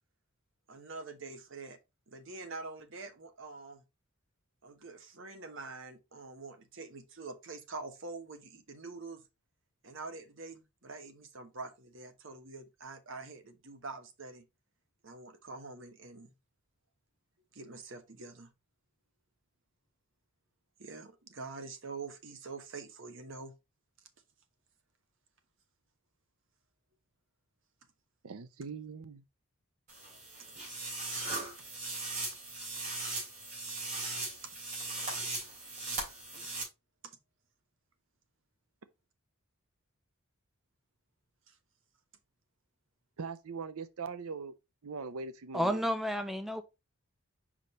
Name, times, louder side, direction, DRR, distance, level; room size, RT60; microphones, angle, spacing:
voice 1, 0.7-1.8 2.1-3.8 4.6-9.2 9.8-14.5 15.0-16.3 17.5-18.5 20.8-23.5 34.4-34.5 37.0-37.2 41.5-41.6, right 3 dB, 60° right, 1.1 m, -45 dB
voice 2, 28.2-29.2 43.2-44.5 44.8-45.9, right 5 dB, 90° right, 0.6 m, -41 dB
sound 1, 29.9-36.6, right 2 dB, 35° right, 3.6 m, -38 dB
voice 3, 45.5-46.6, equal, ahead, 0.5 m, -31 dB
5.2 x 5.0 x 4.1 m
head